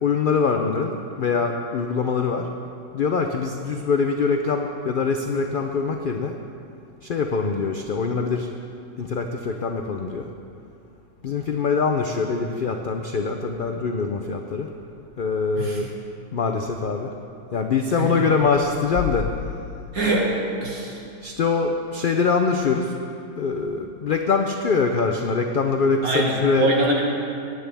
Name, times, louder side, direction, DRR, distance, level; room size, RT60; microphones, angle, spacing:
voice 1, 0.0-2.5 2.9-6.3 7.0-8.5 9.0-10.3 11.2-14.7 15.2-15.9 16.3-17.1 17.5-19.3 21.2-23.0 23.4-26.7, left 5 dB, 70° left, 4 dB, 0.5 m, -23 dB
voice 2, 19.9-20.3 20.6-21.0 26.0-27.0, right 2 dB, 75° right, -2 dB, 2.2 m, -23 dB
16.5 x 9.6 x 3.4 m, 2.6 s
omnidirectional pair, 1.5 m